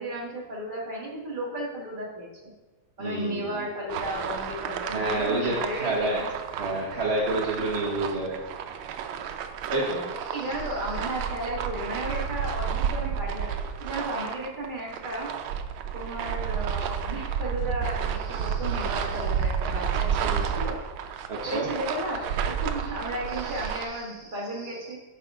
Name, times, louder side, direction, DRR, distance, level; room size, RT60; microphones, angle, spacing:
voice 1, 0.0-2.3 3.0-6.3 9.9-13.5 13.8-15.3 15.9-20.8 21.2-25.0, right 1 dB, 25° right, -4 dB, 1.8 m, -34 dB
voice 2, 3.0-3.7 4.9-6.2 6.5-8.4 9.7-10.3 18.3-18.8 20.2-20.5 21.3-21.7 23.3-24.3 24.5-24.7, right 2 dB, 40° right, -3 dB, 1.0 m, -30 dB
sound 1, 3.9-23.9, right 7 dB, 90° right, 1.4 m, -31 dB
9.5 x 5.6 x 3.6 m, 1.2 s
omnidirectional pair, 2.1 m